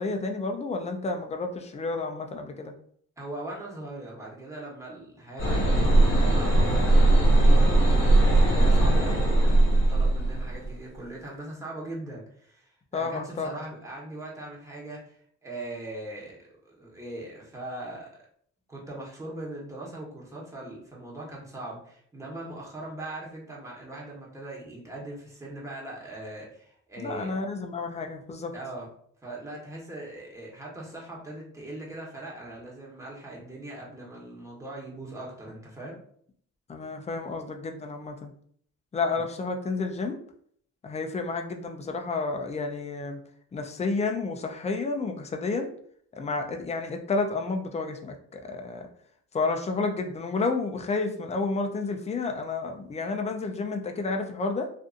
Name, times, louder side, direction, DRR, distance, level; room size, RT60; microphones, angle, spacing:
voice 1, 0.0-2.7 12.9-13.6 27.0-28.5 36.7-38.3 38.9-40.2 40.8-43.2 43.5-45.7 46.2-48.9 49.3-54.7, left 3 dB, 20° left, 4 dB, 0.4 m, -30 dB
voice 2, 3.2-7.7 8.0-16.4 16.6-18.1 18.7-27.3 28.5-28.9 29.2-36.0 39.1-39.2, right 2 dB, 10° right, -4 dB, 1.0 m, -40 dB
sound 1, 5.4-10.7, right 2 dB, 40° left, 1.2 m, -20 dB
2.5 x 2.5 x 2.4 m, 0.62 s
cardioid pair, 90°, 30 cm